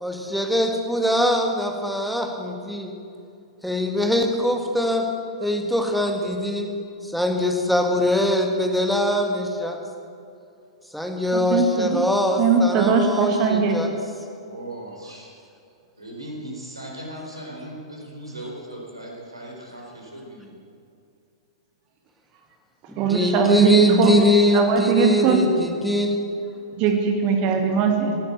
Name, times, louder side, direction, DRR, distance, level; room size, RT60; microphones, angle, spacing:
voice 1, 0.0-2.9 3.6-5.1 5.4-6.7 7.0-9.8 10.9-13.9 22.9-26.1, left 1 dB, ahead, 3 dB, 1.9 m, -22 dB
voice 2, 11.5-12.0 12.4-13.8 23.0-24.2 24.5-25.4 26.8-28.2, right 5 dB, 35° right, 3 dB, 1.9 m, -20 dB
voice 3, 14.4-15.3 16.0-20.5, right 1 dB, 85° right, -1 dB, 4.4 m, -38 dB
18.0 x 9.8 x 7.6 m, 2.5 s
figure-of-eight pair, 105°, 3 cm